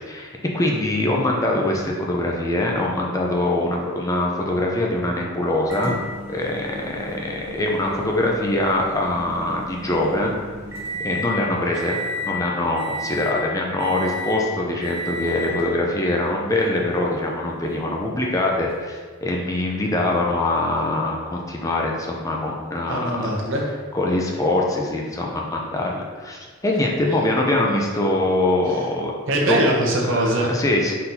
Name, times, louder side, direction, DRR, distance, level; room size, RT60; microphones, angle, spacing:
voice 1, 0.1-10.3 11.0-23.0 23.9-29.1 29.5-29.8 30.5-30.9, left 1 dB, 15° left, -1 dB, 0.4 m, -23 dB
Microwave oven, 5.7-11.3 11.7-12.4 12.8-13.4 13.8-14.4 14.8-15.6 16.6-16.7 18.7-18.8, left 1 dB, 10° right, 1.0 m, -33 dB
voice 2, 22.9-23.6 28.7-28.8 29.3-30.5, right 1 dB, 65° right, -2 dB, 0.8 m, -21 dB
4.3 x 3.7 x 2.7 m, 1.5 s
head